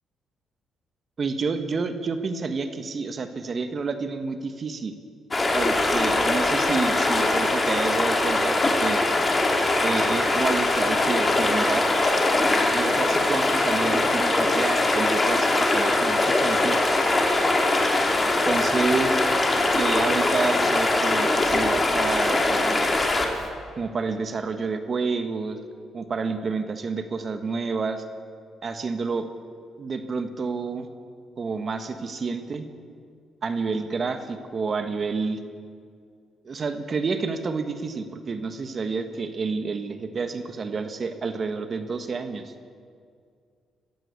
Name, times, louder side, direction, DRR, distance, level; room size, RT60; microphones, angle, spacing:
voice 1, 1.2-4.9 5.5-9.0 9.8-11.8 12.7-16.8 18.4-19.2 19.7-23.0 23.8-25.6 25.9-28.0 28.6-29.3 29.8-30.9 31.4-32.7 33.4-35.4 36.4-42.5, right 4 dB, 45° right, 8 dB, 1.6 m, -29 dB
sound 1, 5.3-23.5, left 2 dB, 25° left, 3.3 m, -22 dB
22.0 x 15.5 x 8.4 m, 2.2 s
cardioid pair, 90°, 0 cm